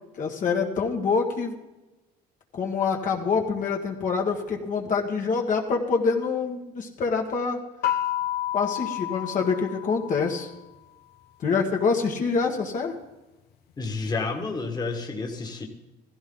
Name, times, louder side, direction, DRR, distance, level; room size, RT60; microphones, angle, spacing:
voice 1, 0.2-1.5 2.5-7.6 8.5-10.5 11.4-13.0, left 5 dB, 50° left, 1 dB, 1.8 m, -26 dB
sound 1, 7.8-10.5, left 13 dB, 70° left, 0.9 m, -30 dB
voice 2, 13.8-15.6, left 3 dB, 25° left, 3 dB, 1.9 m, -30 dB
16.0 x 15.0 x 4.0 m, 1.0 s
cardioid pair, 110°, 17 cm